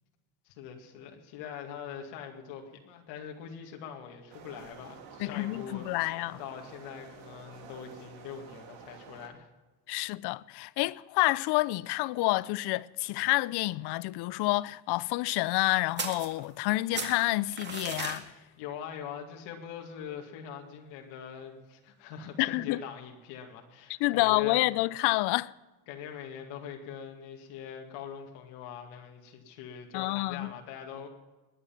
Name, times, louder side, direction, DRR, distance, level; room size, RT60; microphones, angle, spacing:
voice 1, 0.4-6.1 6.4-9.5 18.6-24.6 25.9-31.1, left 8 dB, 85° left, 2.3 m, -43 dB
sound 1, 4.3-9.3, right 6 dB, 70° right, 2.4 m, -50 dB
voice 2, 5.2-6.4 9.9-18.2 22.4-22.8 24.0-25.5 29.9-30.5, left 20 dB, 65° left, 0.6 m, -28 dB
sound 2, 16.0-16.7 16.9-18.2, right 4 dB, 25° right, 2.1 m, -36 dB
20.0 x 9.6 x 5.8 m
cardioid pair, 125°, 43 cm